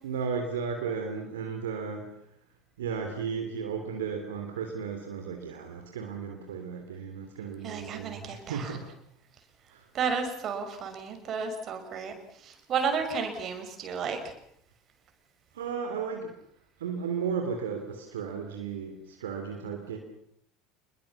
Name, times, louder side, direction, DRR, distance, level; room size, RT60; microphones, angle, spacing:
voice 1, 0.0-2.1 2.8-8.9 9.7-9.9 15.5-16.3 16.8-20.0, right 6 dB, 70° right, 4 dB, 3.2 m, -34 dB
voice 2, 7.6-8.8 9.9-14.3, right 5 dB, 40° right, 6 dB, 6.0 m, -32 dB
28.0 x 21.5 x 7.2 m, 0.71 s
figure-of-eight pair, 70°, 0 cm